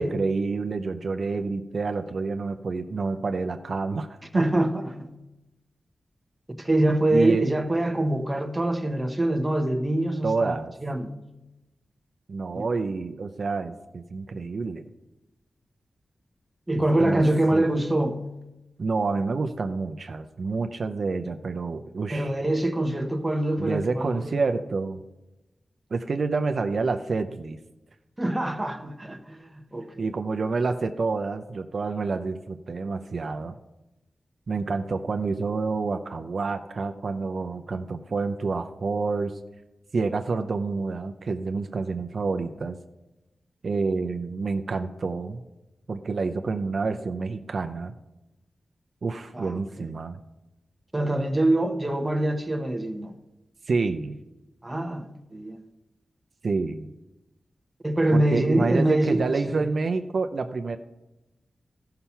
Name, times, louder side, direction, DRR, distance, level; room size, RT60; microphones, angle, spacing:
voice 1, 0.0-4.1 4.3-4.4 7.1-7.5 10.2-10.7 12.3-14.8 16.7-17.2 17.5-17.7 18.8-22.3 23.6-25.0 25.9-27.6 30.0-33.6 34.5-39.3 39.9-42.8 43.6-45.4 45.9-47.9 49.0-50.2 53.7-54.2 56.4-56.9 58.1-60.8, right 4 dB, 55° right, 0.6 m, -28 dB
voice 2, 4.3-5.1 6.6-10.5 10.8-11.1 12.5-12.7 16.7-18.2 22.1-24.4 28.2-30.1 49.3-49.9 50.9-53.1 54.6-55.6 57.8-59.6, right 1 dB, 15° right, 0.9 m, -25 dB
14.0 x 5.8 x 5.6 m
wide cardioid pair, 115°, 0 cm